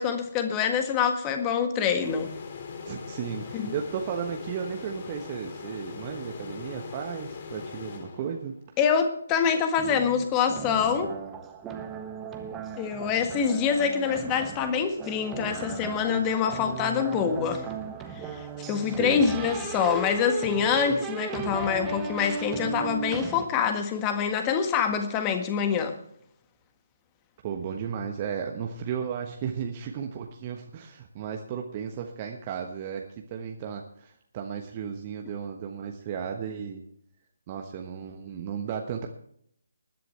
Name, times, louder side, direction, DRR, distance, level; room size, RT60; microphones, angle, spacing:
voice 1, 0.0-2.3 3.5-3.7 8.8-11.1 12.8-17.7 18.3-26.0, left 7 dB, 20° left, 7 dB, 1.7 m, -25 dB
sound 1, 2.0-8.6, left 5 dB, 40° left, 2.5 m, -40 dB
voice 2, 2.8-8.6 18.8-19.3 27.4-36.8 37.5-39.1, right 7 dB, 30° right, 3 dB, 1.2 m, -34 dB
sound 2, 9.8-23.5, right 6 dB, 15° right, 1.4 m, -37 dB
20.5 x 11.0 x 3.4 m, 0.69 s
figure-of-eight pair, 145°, 0 cm